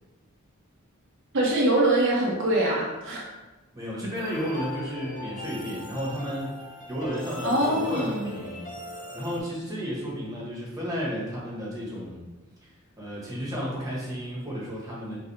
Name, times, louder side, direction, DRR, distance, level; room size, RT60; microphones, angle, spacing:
voice 1, 1.3-3.3 7.4-8.3, right 1 dB, 60° right, -3 dB, 0.7 m, -23 dB
voice 2, 3.7-6.6 6.9-8.7 9.1-12.3 12.6-12.7 13.0-15.2, equal, 15° right, -6 dB, 1.1 m, -33 dB
sound 1, 4.1-9.4, left 1 dB, 40° left, 0.5 m, -39 dB
3.7 x 3.3 x 2.7 m, 1.1 s
head